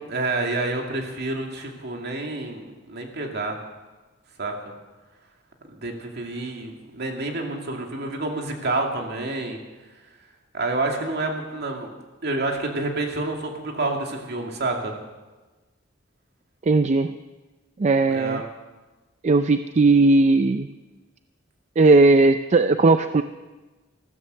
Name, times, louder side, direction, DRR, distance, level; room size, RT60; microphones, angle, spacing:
voice 1, 0.1-3.6 4.4-4.7 5.7-9.6 10.5-11.9 12.2-14.9 18.1-18.4, right 2 dB, 60° right, 2 dB, 2.4 m, -28 dB
voice 2, 16.6-17.1 17.8-18.5 19.2-20.7 21.8-23.2, right 3 dB, 35° right, 10 dB, 0.4 m, -17 dB
14.5 x 13.0 x 6.6 m, 1.2 s
head